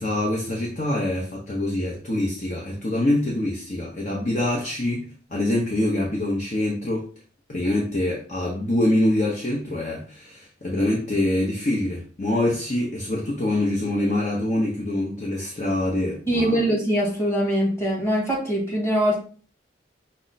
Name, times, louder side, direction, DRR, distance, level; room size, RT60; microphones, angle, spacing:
voice 1, 0.0-7.1 7.5-16.6, left 1 dB, 40° left, -3 dB, 0.9 m, -25 dB
voice 2, 16.3-19.2, equal, 15° left, -5 dB, 1.8 m, -22 dB
5.9 x 2.1 x 4.0 m, 0.39 s
head